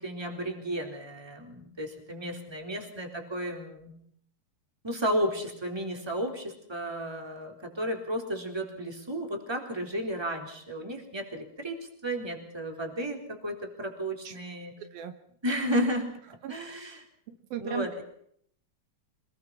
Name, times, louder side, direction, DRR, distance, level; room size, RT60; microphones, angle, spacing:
voice 1, 0.0-3.9 4.8-14.7 15.4-16.1 16.5-17.0 17.6-18.0, equal, 5° right, 3 dB, 3.5 m, -33 dB
voice 2, 14.8-15.1 16.4-16.8 17.5-17.9, right 11 dB, 75° right, 9 dB, 2.8 m, -37 dB
26.5 x 21.5 x 5.8 m, 0.66 s
omnidirectional pair, 4.4 m